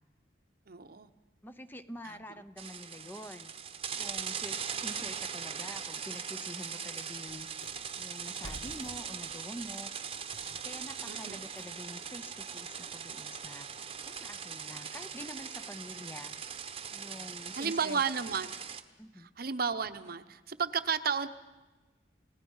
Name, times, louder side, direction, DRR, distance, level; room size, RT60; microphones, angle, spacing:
voice 1, 0.7-1.1 2.0-2.2 11.1-11.4 17.6-18.5 19.4-21.3, right 6 dB, 55° right, 11 dB, 0.9 m, -32 dB
voice 2, 1.4-3.5 4.0-7.5 8.0-9.9 10.4-13.7 14.0-16.4 16.9-18.0 19.0-19.3, left 1 dB, 10° left, 10 dB, 0.8 m, -46 dB
sound 1, 2.6-18.8, right 7 dB, 30° right, 1.0 m, -40 dB
sound 2, 4.8-4.9 5.4-5.5 5.9-11.9, equal, 85° left, 2.5 m, -52 dB
30.0 x 17.5 x 5.6 m, 1.2 s
head